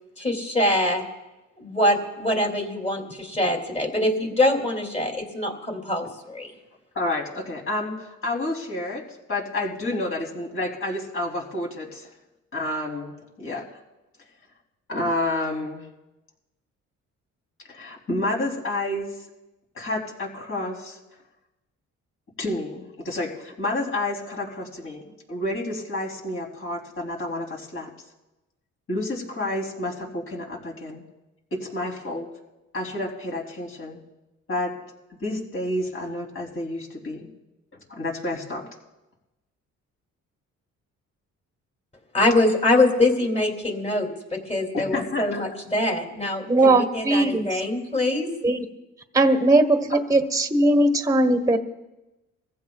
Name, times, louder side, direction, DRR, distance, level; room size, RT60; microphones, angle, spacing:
voice 1, 0.2-1.0 1.6-6.5 42.1-48.3, left 1 dB, 20° left, 2 dB, 2.9 m, -24 dB
voice 2, 6.9-9.0 9.3-12.1 12.5-13.6 14.9-15.8 17.7-19.3 19.7-21.0 22.4-25.0 25.3-27.9 28.9-31.0 31.5-32.3 32.7-34.0 34.5-34.7 35.2-37.3 37.9-38.6 44.7-45.4, left 1 dB, 45° left, -1 dB, 3.5 m, -29 dB
voice 3, 46.4-47.6 48.4-48.6 49.1-51.6, right 2 dB, 10° right, 7 dB, 1.3 m, -19 dB
23.5 x 15.0 x 2.4 m, 1.0 s
cardioid pair, 90°, 30 cm